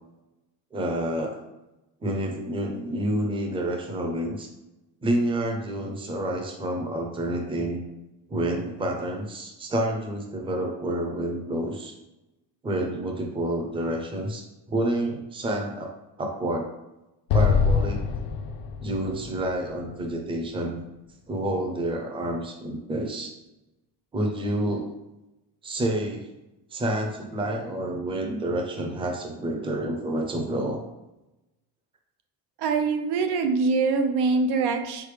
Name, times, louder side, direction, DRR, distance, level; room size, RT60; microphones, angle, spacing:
voice 1, 0.7-1.4 2.0-4.5 5.0-7.8 8.3-11.9 12.6-16.7 17.3-18.0 18.8-20.8 21.3-23.3 24.1-24.9 25.6-26.3 26.7-30.8, right 1 dB, 15° right, 2 dB, 0.5 m, -29 dB
Explosion, 17.3-20.6, left 5 dB, 70° left, 0.5 m, -25 dB
voice 2, 32.6-35.1, right 4 dB, 85° right, 5 dB, 0.7 m, -24 dB
3.9 x 3.4 x 3.2 m, 0.98 s
cardioid pair, 145°, 39 cm